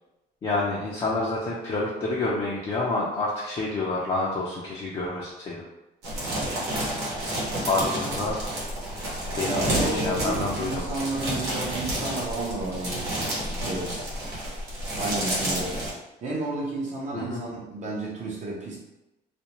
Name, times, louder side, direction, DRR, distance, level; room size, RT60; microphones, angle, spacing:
voice 1, 0.4-5.6 7.6-8.4 9.3-10.9 17.1-17.4, left 2 dB, 35° left, -5 dB, 0.5 m, -28 dB
sound 1, 6.0-15.9, right 1 dB, 85° right, 1.0 m, -30 dB
voice 2, 9.4-13.1 13.6-14.0 15.0-15.8 16.2-18.8, right 2 dB, 45° right, -4 dB, 0.7 m, -32 dB
2.5 x 2.1 x 2.9 m, 0.98 s
cardioid pair, 110°, 17 cm